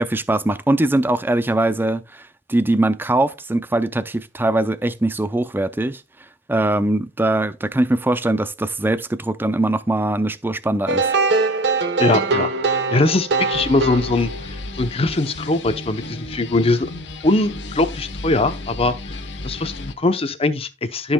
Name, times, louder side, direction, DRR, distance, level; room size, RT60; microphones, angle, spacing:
voice 1, 0.0-6.0 6.5-11.1, right 1 dB, 10° right, 0.4 m, -21 dB
sound 1, 10.9-14.7, right 3 dB, 70° right, 1.1 m, -21 dB
voice 2, 12.0-16.9 17.2-18.9 19.4-21.1, left 2 dB, 35° left, 0.8 m, -21 dB
sound 2, 13.5-19.9, left 2 dB, 75° left, 1.1 m, -33 dB
13.0 x 5.4 x 2.2 m
head